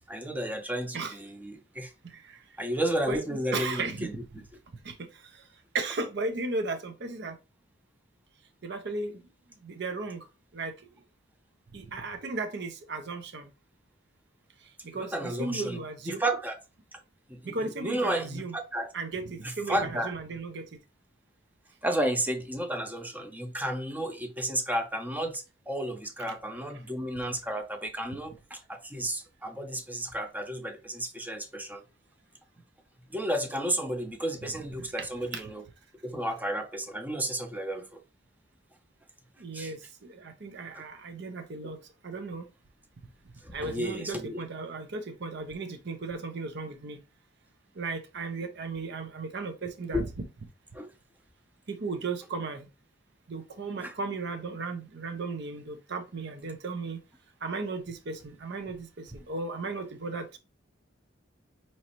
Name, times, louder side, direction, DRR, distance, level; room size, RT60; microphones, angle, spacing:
voice 1, 0.1-1.9 2.6-4.1 14.9-15.8 16.1-16.6 16.9-17.0 17.3-18.9 19.4-20.2 21.8-31.8 33.1-35.6 36.0-38.0 39.5-39.7 40.7-40.8 41.6-41.7 43.4-44.5 49.9-50.1 50.7-50.9 53.8-53.9, right 1 dB, 10° right, 0.6 m, -32 dB
voice 2, 3.5-4.1 4.8-5.1 5.7-7.4 8.6-9.2 9.6-10.2 10.5-10.7 11.7-13.5 14.8-16.2 17.4-18.5 18.9-20.7 35.0-35.1 35.3-35.4 39.4-41.8 42.0-42.5 43.5-47.0 47.8-50.0 51.7-52.7 53.3-57.0 57.4-60.4, right 3 dB, 60° right, 0.7 m, -35 dB
5.2 x 3.1 x 2.9 m
head